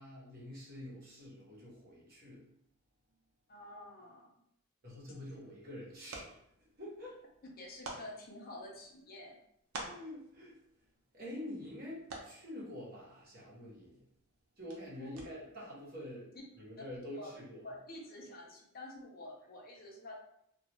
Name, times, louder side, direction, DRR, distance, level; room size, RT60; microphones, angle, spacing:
voice 1, 0.0-2.4 4.8-6.4 6.8-7.2 9.8-10.5 11.1-14.0 14.6-16.3 16.6-17.6, left 1 dB, 45° right, -6 dB, 1.0 m, -47 dB
voice 2, 3.5-4.3 5.1-5.3 7.6-9.4 15.0-15.1 16.8-16.9 17.2-17.3 17.6-20.1, left 1 dB, 45° left, -1 dB, 0.5 m, -49 dB
sound 1, 4.9-15.7, right 2 dB, 85° right, 0.6 m, -52 dB
2.4 x 2.3 x 3.0 m, 0.74 s
head